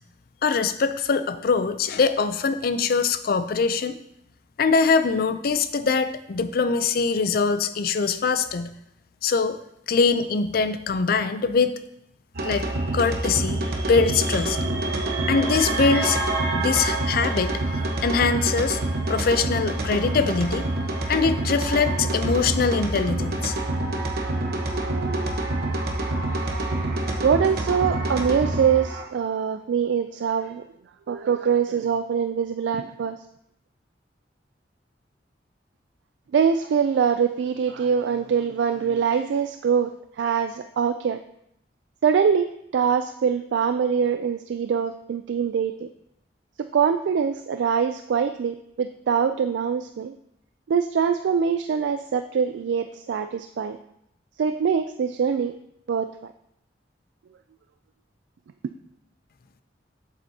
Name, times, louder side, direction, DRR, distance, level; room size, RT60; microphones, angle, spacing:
voice 1, 0.4-4.0 4.6-8.7 9.2-9.6 9.9-11.7 12.4-12.7 12.9-13.6 13.9-14.6 15.3-16.3 16.5-17.5 18.0-18.8 19.1-20.6 21.1-23.5, left 5 dB, 55° left, 11 dB, 0.4 m, -23 dB
sound 1, 12.3-29.0, right 2 dB, 60° right, 1.0 m, -26 dB
voice 2, 27.2-30.6 31.1-33.2 36.3-41.2 42.0-45.9 46.6-50.1 50.7-53.8 54.4-55.5 55.9-56.3, right 7 dB, 75° right, 9 dB, 0.3 m, -23 dB
7.7 x 7.4 x 2.7 m, 0.77 s
head